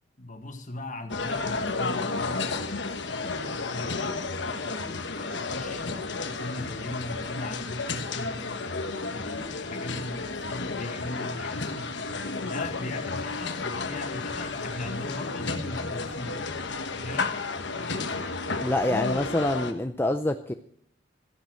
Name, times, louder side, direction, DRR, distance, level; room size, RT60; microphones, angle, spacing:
voice 1, 0.2-2.5 3.7-8.6 9.1-11.9 12.4-16.4 17.0-17.4, left 2 dB, 40° left, 6 dB, 1.7 m, -39 dB
sound 1, 1.1-19.7, left 3 dB, 65° left, 1.2 m, -32 dB
voice 2, 18.6-20.5, left 1 dB, 10° left, 6 dB, 0.5 m, -26 dB
13.5 x 10.5 x 6.4 m, 0.65 s
head